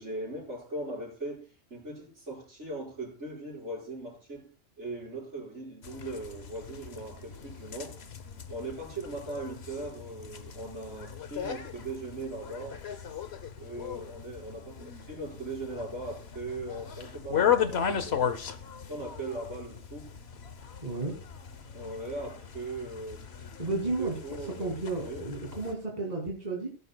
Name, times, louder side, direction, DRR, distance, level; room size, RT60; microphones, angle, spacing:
voice 1, 0.0-8.0 8.5-12.8 13.6-18.4 18.9-20.1 21.7-23.2 24.0-25.2, right 2 dB, 70° right, -2 dB, 5.9 m, -39 dB
sound 1, 5.8-25.7, left 8 dB, 60° left, 1.2 m, -36 dB
voice 2, 20.8-21.2 23.6-24.2 24.6-26.7, right 2 dB, 35° right, -1 dB, 2.9 m, -32 dB
19.0 x 10.5 x 2.3 m, 0.35 s
omnidirectional pair, 1.3 m